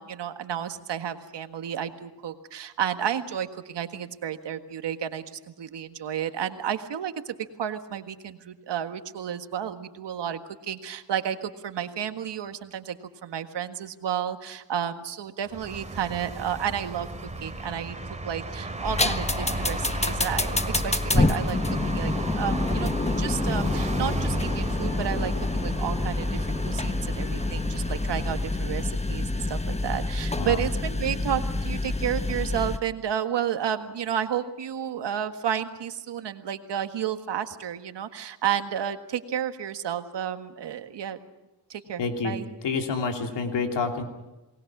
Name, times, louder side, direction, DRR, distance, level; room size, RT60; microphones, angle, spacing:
voice 1, 0.0-13.0 13.2-17.1 17.4-18.0 18.2-21.6 21.9-41.2 41.7-42.5, right 9 dB, 80° right, 8 dB, 1.7 m, -31 dB
sound 1, 15.5-28.7, right 2 dB, 15° right, 3.1 m, -35 dB
sound 2, 18.8-32.8, left 2 dB, 15° left, 1.4 m, -27 dB
voice 2, 42.0-42.4 42.6-44.0, left 4 dB, 85° left, 4 dB, 3.1 m, -28 dB
29.0 x 20.0 x 6.1 m, 1.0 s
cardioid pair, 60°, 42 cm